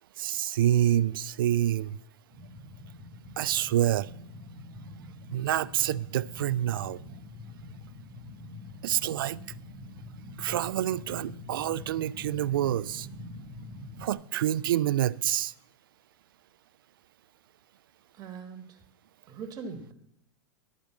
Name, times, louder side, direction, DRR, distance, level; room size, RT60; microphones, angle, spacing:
voice 1, 0.2-2.0 3.4-4.1 5.3-7.0 8.8-9.4 10.4-13.1 14.0-15.5, right 12 dB, 80° right, 0.4 m, -27 dB
sound 1, 2.3-14.1, left 2 dB, ahead, 1.5 m, -45 dB
voice 2, 18.1-18.8 19.3-19.9, right 5 dB, 30° right, 1.3 m, -41 dB
11.5 x 5.1 x 8.1 m
hypercardioid pair, 115°, 11 cm